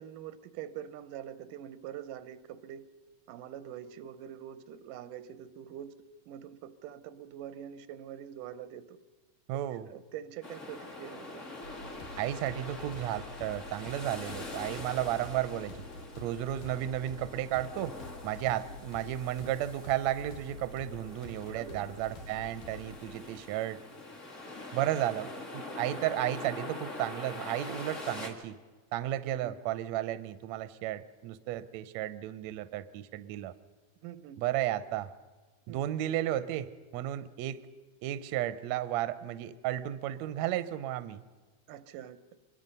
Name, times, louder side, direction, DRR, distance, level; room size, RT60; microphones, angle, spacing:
voice 1, 0.0-2.9 3.3-5.9 6.3-9.0 9.9-11.4 18.7-18.8 21.5-21.9 29.3-29.6 34.0-34.4 35.7-35.8 41.7-42.2, right 10 dB, 90° right, 13 dB, 2.5 m, -44 dB
voice 2, 9.5-9.9 12.2-15.8 16.2-18.0 18.2-23.8 24.7-28.6 28.9-33.5 34.4-35.1 35.7-37.6 38.0-41.2, right 13 dB, 75° right, 13 dB, 1.8 m, -33 dB
sound 1, 10.4-28.3, left 2 dB, 25° left, 2.2 m, -44 dB
sound 2, 11.6-23.0, left 2 dB, 75° left, 3.2 m, -47 dB
25.5 x 21.5 x 5.4 m, 1.3 s
omnidirectional pair, 3.6 m